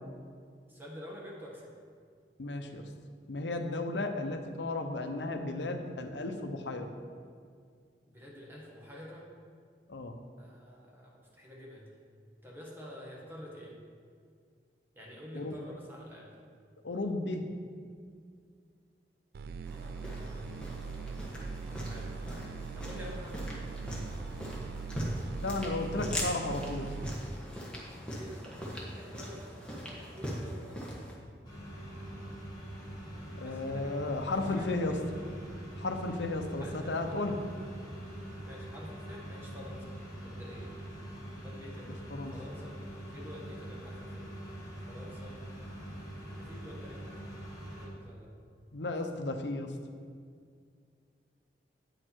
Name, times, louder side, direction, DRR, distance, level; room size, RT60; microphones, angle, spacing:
voice 1, 0.7-1.7 8.1-9.3 10.2-11.9 12.4-13.8 14.9-16.3 19.8-20.8 21.7-22.5 22.7-23.7 28.1-30.9 33.4-35.3 36.6-37.1 38.4-39.9 40.2-40.7 41.4-42.8 43.1-44.3 44.9-45.4 46.4-47.4 47.8-48.3, equal, 10° right, -4 dB, 1.6 m, -48 dB
voice 2, 2.4-2.9 3.3-6.9 9.9-10.2 15.3-15.6 16.8-17.4 25.4-26.9 33.4-35.0 35.8-37.4 42.1-42.3 48.7-49.7, left 2 dB, 80° left, 6 dB, 0.8 m, -34 dB
sound 1, 19.3-27.1, right 5 dB, 60° right, 0.3 m, -41 dB
sound 2, 19.7-31.2, equal, 5° left, 1.4 m, -40 dB
sound 3, 31.4-47.9, right 1 dB, 25° left, 2.3 m, -44 dB
8.9 x 6.6 x 4.5 m, 2.1 s
head